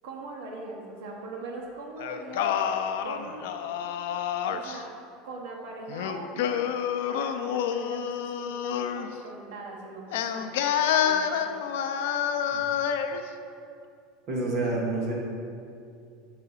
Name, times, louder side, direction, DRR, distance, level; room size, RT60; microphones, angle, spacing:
voice 1, 0.0-2.6 3.0-3.5 4.5-4.9 5.2-6.6 7.1-10.5 10.9-11.6, right 3 dB, 65° right, -1 dB, 1.0 m, -41 dB
Singing, 2.0-4.8 5.9-9.1 10.1-13.2, left 8 dB, 80° left, 0.4 m, -28 dB
voice 2, 14.3-15.2, right 2 dB, 40° right, -3 dB, 1.4 m, -28 dB
5.6 x 4.7 x 5.5 m, 2.5 s
supercardioid pair, 175°, 0 cm